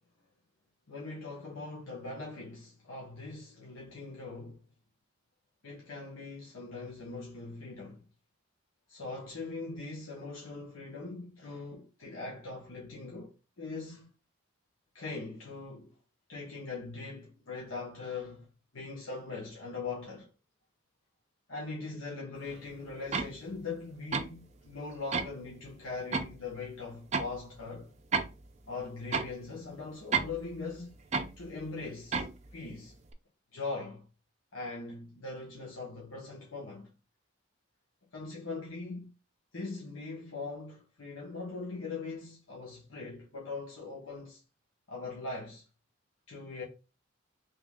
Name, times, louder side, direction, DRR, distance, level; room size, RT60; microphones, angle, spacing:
voice 1, 0.9-4.6 5.6-8.0 8.9-14.1 14.9-15.9 16.3-18.5 18.7-20.3 21.5-27.9 28.7-30.9 31.4-32.2 32.5-33.0 33.5-34.1 34.5-36.9 38.1-39.1 39.5-44.4 44.9-45.6 46.3-46.6, left 3 dB, 80° left, 1.2 m, -41 dB
sound 1, 23.1-23.3 24.1-24.3 25.1-25.3 26.1-26.3 27.1-27.3 28.1-28.3 29.1-29.3 30.1-30.4 31.1-31.3 32.1-32.4, right 5 dB, 30° right, 0.4 m, -30 dB
3.4 x 3.1 x 3.6 m
head